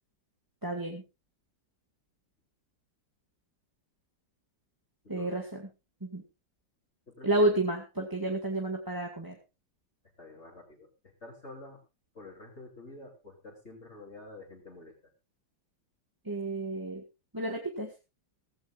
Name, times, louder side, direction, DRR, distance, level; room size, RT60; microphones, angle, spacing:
voice 1, 0.6-1.0 5.1-5.4 6.0-6.2 7.2-9.3 16.3-17.0 17.3-17.9, right 2 dB, 10° right, 1 dB, 1.9 m, -30 dB
voice 2, 5.0-5.4 7.1-7.6 10.2-11.8 12.1-14.9, left 2 dB, 35° left, -1 dB, 3.6 m, -48 dB
17.0 x 15.5 x 2.5 m, 0.28 s
omnidirectional pair, 2.1 m